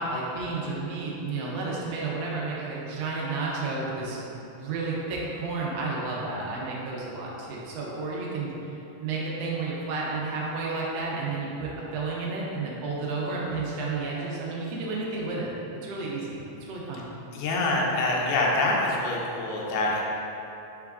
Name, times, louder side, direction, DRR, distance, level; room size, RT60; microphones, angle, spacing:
voice 1, 0.0-4.2 4.6-8.5 9.0-15.5 15.8-17.0, right 3 dB, 80° right, -4 dB, 1.4 m, -31 dB
voice 2, 17.3-20.0, left 2 dB, 85° left, -2 dB, 2.0 m, -25 dB
4.7 x 3.4 x 2.3 m, 3.0 s
omnidirectional pair, 3.5 m